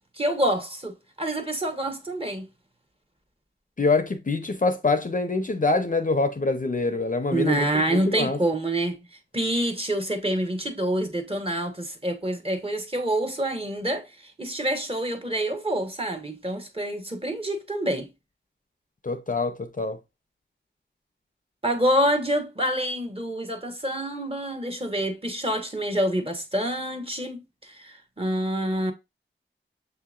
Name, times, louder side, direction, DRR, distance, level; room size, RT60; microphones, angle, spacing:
voice 1, 0.2-2.4 7.3-9.1 9.3-18.1 21.6-28.9, right 1 dB, 30° right, 1.0 m, -27 dB
voice 2, 3.8-8.4 19.0-20.0, left 3 dB, 40° left, 0.5 m, -25 dB
6.7 x 2.8 x 2.4 m
wide cardioid pair, 50°, 20 cm